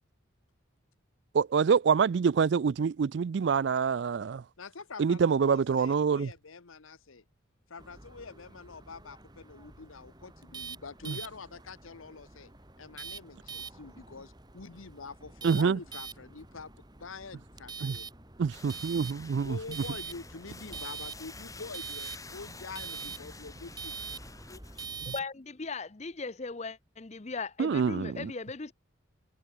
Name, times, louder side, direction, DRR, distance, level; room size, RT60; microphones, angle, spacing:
voice 1, 1.3-4.4 5.0-6.3 11.1-11.2 15.4-15.8 17.8-18.0 18.4-19.6 25.1-25.2 27.6-28.3, right 6 dB, 60° right, 0.3 m, -26 dB
voice 2, 4.6-7.2 7.7-12.5 12.8-18.1 19.4-24.1, left 4 dB, 85° left, 1.1 m, -46 dB
sound 1, 7.8-25.2, right 5 dB, 20° right, 3.5 m, -45 dB
sound 2, 18.5-24.9, left 3 dB, 15° left, 5.8 m, -49 dB
voice 3, 25.1-28.7, left 4 dB, 35° left, 0.7 m, -38 dB
head